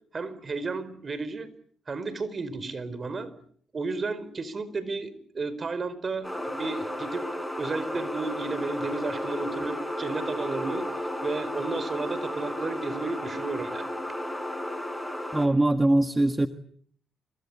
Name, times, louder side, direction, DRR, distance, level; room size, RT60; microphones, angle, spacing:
voice 1, 0.1-1.5 1.9-3.3 3.7-7.3 7.6-13.9, right 3 dB, 35° right, 15 dB, 4.7 m, -33 dB
sound 1, 6.2-15.5, left 1 dB, 5° left, 5.7 m, -33 dB
voice 2, 15.3-16.5, right 1 dB, 15° right, 8 dB, 1.5 m, -22 dB
29.0 x 24.0 x 8.4 m, 0.62 s
cardioid pair, 90°, 0 cm